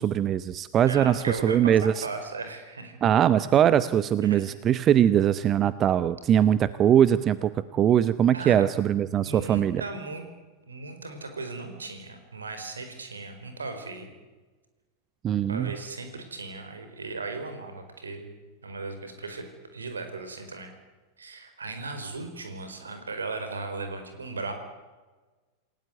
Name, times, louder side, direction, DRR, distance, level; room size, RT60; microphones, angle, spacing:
voice 1, 0.0-2.0 3.0-9.8 15.2-15.7, right 10 dB, 30° right, 15 dB, 0.8 m, -22 dB
voice 2, 0.8-1.7 2.0-3.0 4.2-4.4 8.3-8.7 9.2-10.2 10.7-14.1 15.5-18.3 18.6-19.5 19.7-20.7 21.2-24.5, right 3 dB, 75° right, 7 dB, 4.7 m, -37 dB
28.5 x 18.0 x 9.5 m, 1.3 s
figure-of-eight pair, 90°, 0 cm